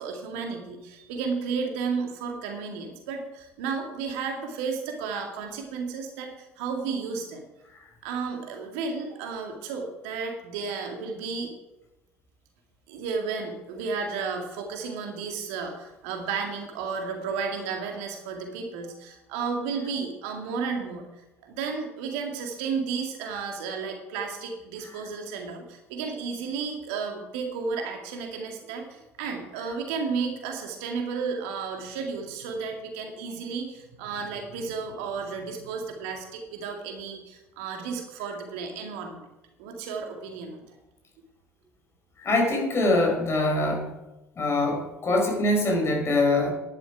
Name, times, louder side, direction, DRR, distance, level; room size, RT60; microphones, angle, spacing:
voice 1, 0.0-7.4 8.0-11.5 12.9-21.1 21.4-39.2 39.6-40.7, right 5 dB, 65° right, 3 dB, 2.1 m, -33 dB
voice 2, 42.2-43.9 44.4-46.5, left 2 dB, 35° left, 1 dB, 4.8 m, -23 dB
11.0 x 11.0 x 4.9 m, 0.98 s
figure-of-eight pair, 60°, 8 cm